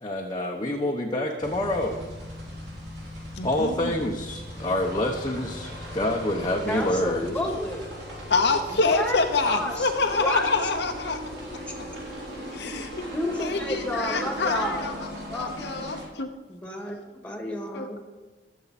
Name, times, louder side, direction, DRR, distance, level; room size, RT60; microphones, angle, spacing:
voice 1, 0.0-2.0 3.4-7.2, left 1 dB, 25° left, -1 dB, 1.1 m, -27 dB
sound 1, 1.4-16.1, equal, 60° right, 4.5 m, -38 dB
voice 2, 3.4-3.9 8.3-11.2 12.5-13.1 13.4-14.9 15.3-16.3 17.7-17.9, left 3 dB, 65° left, 5 dB, 0.9 m, -26 dB
voice 3, 6.7-7.9 8.7-9.2 9.5-10.4 11.7-12.0 13.1-14.9 15.3-15.5 16.5-18.0, left 1 dB, 5° left, 1 dB, 2.0 m, -31 dB
20.0 x 7.4 x 4.2 m, 1.3 s
head